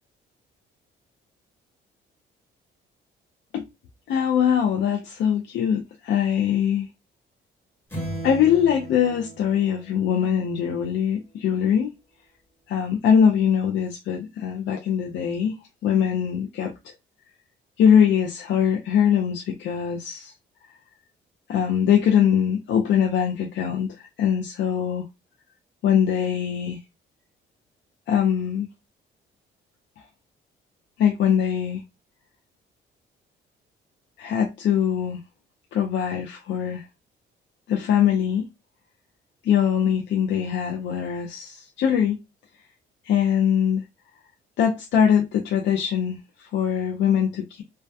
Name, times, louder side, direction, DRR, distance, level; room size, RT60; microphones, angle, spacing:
voice 1, 4.1-6.9 8.2-11.9 12.7-16.9 17.8-20.3 21.5-25.0 25.8-26.8 28.1-28.7 31.0-31.8 34.2-35.2 35.7-36.8 37.7-38.5 39.4-42.2 43.0-43.8 44.6-47.6, left 8 dB, 70° left, 0.5 m, -22 dB
sound 1, 7.9-10.6, right 1 dB, 10° left, 1.0 m, -36 dB
2.2 x 2.2 x 2.5 m
cardioid pair, 90°, 20 cm